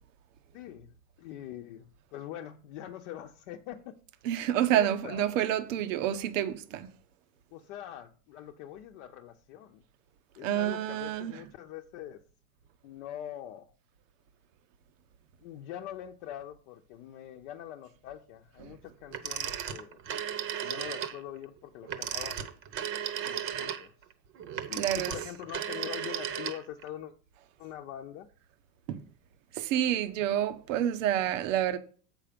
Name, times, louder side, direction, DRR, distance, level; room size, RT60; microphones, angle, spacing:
voice 1, 0.5-4.0 4.8-5.2 7.5-9.8 10.4-12.2 12.8-13.7 15.4-20.0 20.6-22.4 23.2-23.9 24.7-27.1 27.6-28.3, left 11 dB, 65° left, 0.8 m, -43 dB
voice 2, 4.2-6.9 10.4-11.4 18.6-18.7 24.8-25.1 28.9-29.0 29.5-31.8, right 11 dB, 75° right, 0.9 m, -28 dB
Telephone, 19.1-21.2 21.8-26.9, right 9 dB, 35° right, 0.8 m, -35 dB
7.6 x 5.4 x 5.1 m
supercardioid pair, 145°, 39 cm